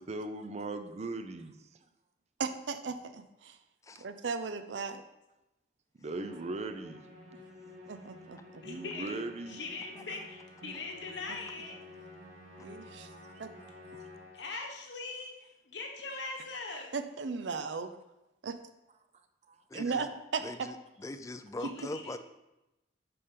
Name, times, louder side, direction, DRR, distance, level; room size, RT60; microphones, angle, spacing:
voice 1, 0.0-1.5 6.0-7.0 8.6-9.6 13.1-13.3 13.9-14.1 19.5-19.6, right 2 dB, 40° right, 8 dB, 0.5 m, -39 dB
voice 2, 2.4-3.6 4.0-5.0 7.9-8.4 10.6-10.8 12.6-13.1 13.4-13.5 16.9-17.9 18.4-18.6 19.7-20.7, right 4 dB, 85° right, 10 dB, 0.5 m, -36 dB
Musical instrument, 6.1-14.6, left 2 dB, 55° right, 2.4 m, -51 dB
voice 3, 8.6-9.2 9.5-11.8 14.3-15.3 15.7-16.9 21.6-22.2, left 3 dB, 75° left, 2 dB, 1.2 m, -41 dB
voice 4, 19.7-20.1 20.4-22.2, left 2 dB, 15° left, 10 dB, 0.3 m, -41 dB
6.8 x 5.1 x 3.8 m, 0.95 s
head